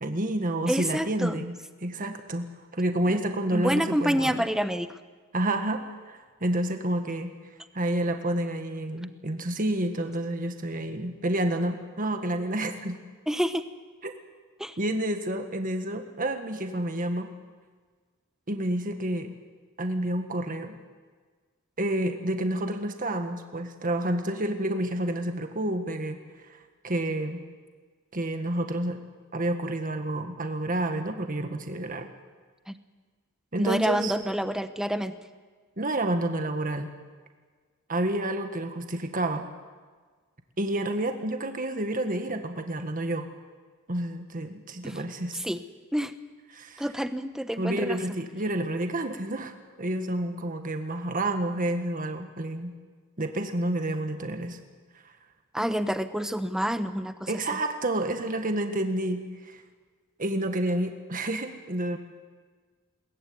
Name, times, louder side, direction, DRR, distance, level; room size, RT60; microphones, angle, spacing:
voice 1, 0.0-4.4 5.3-7.3 7.7-13.0 14.0-14.1 14.8-17.3 18.5-19.3 19.8-20.8 21.8-26.2 26.5-26.6 26.8-27.4 28.1-29.0 29.3-32.1 33.5-34.1 35.8-36.9 37.9-39.5 40.6-43.3 43.9-45.4 46.5-46.9 47.6-52.7 53.2-54.6 57.3-59.6 60.2-62.0, right 1 dB, 40° right, 6 dB, 1.7 m, -29 dB
voice 2, 0.7-1.4 3.1-3.2 3.5-4.9 13.3-13.6 14.6-14.8 32.7-32.8 33.6-35.2 44.8-45.0 45.4-45.6 45.9-46.1 46.8-48.0 55.5-57.3, equal, 5° right, 10 dB, 1.0 m, -28 dB
22.0 x 19.5 x 9.5 m, 1.5 s
head